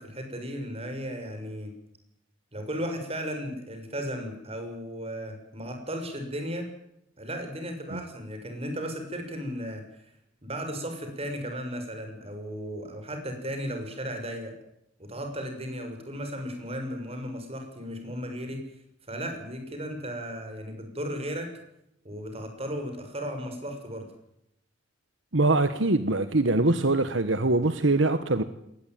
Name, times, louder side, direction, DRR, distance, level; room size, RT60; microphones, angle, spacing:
voice 1, 0.0-1.7 2.5-6.7 7.2-9.8 10.4-14.6 15.0-18.6 19.1-21.5 22.0-24.1, equal, 30° right, 5 dB, 6.4 m, -35 dB
voice 2, 25.3-28.4, right 2 dB, 70° right, 11 dB, 1.4 m, -23 dB
21.5 x 19.0 x 9.3 m, 0.79 s
head